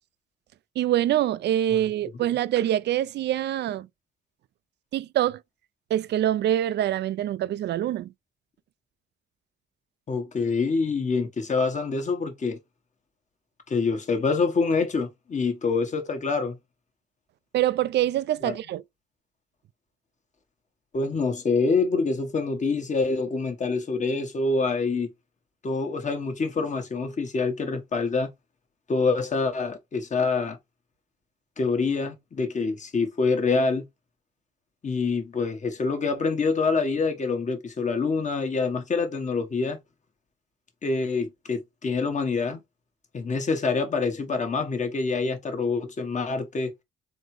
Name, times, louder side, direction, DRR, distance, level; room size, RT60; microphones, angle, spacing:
voice 1, 0.8-3.9 4.9-5.4 5.9-8.1 17.5-18.8, right 12 dB, 60° right, 0.4 m, -25 dB
voice 2, 10.1-12.6 13.7-16.6 18.4-18.5 20.9-25.1 25.6-28.3 28.9-30.6 31.6-33.8 34.8-39.8 40.8-42.6 43.1-46.7, left 4 dB, 40° left, 1.2 m, -26 dB
4.0 x 3.6 x 3.2 m
cardioid pair, 90°, 20 cm